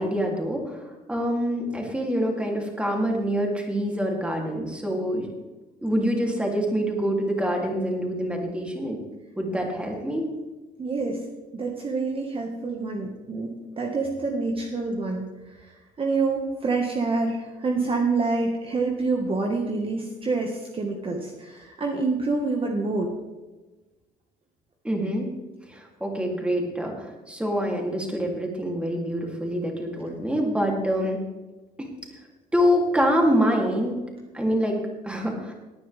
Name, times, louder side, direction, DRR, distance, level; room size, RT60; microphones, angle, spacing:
voice 1, 0.0-5.3 5.8-9.0 9.4-10.2 24.8-25.3 25.7-31.2 31.8-31.9 32.5-34.0 34.3-35.5, equal, 5° right, 0 dB, 3.2 m, -26 dB
voice 2, 10.8-11.2 11.5-23.1, right 3 dB, 35° right, 1 dB, 1.7 m, -27 dB
18.5 x 9.7 x 3.6 m, 1.2 s
cardioid pair, 110°, 17 cm